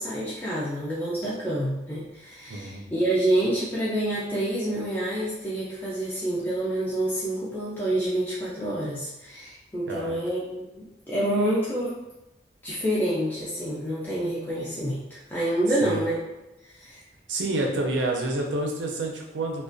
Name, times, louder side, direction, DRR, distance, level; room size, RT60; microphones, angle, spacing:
voice 1, 0.0-12.0 12.6-16.2 16.6-17.0, right 1 dB, 10° left, -8 dB, 0.3 m, -28 dB
voice 2, 2.5-2.9 9.9-10.2 15.8-16.0 17.3-19.6, right 2 dB, 90° right, 1 dB, 0.5 m, -28 dB
2.3 x 2.1 x 2.5 m, 0.97 s
head